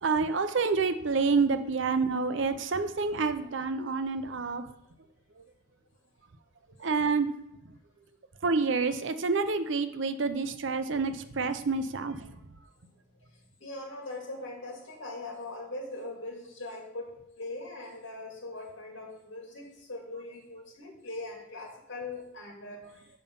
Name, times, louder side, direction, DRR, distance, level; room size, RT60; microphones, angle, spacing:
voice 1, 0.0-4.6 6.8-7.3 8.4-12.3, right 4 dB, 65° right, 10 dB, 0.6 m, -28 dB
voice 2, 13.3-17.1 17.4-23.1, left 2 dB, 65° left, 0 dB, 2.3 m, -41 dB
7.2 x 5.4 x 5.4 m, 0.85 s
head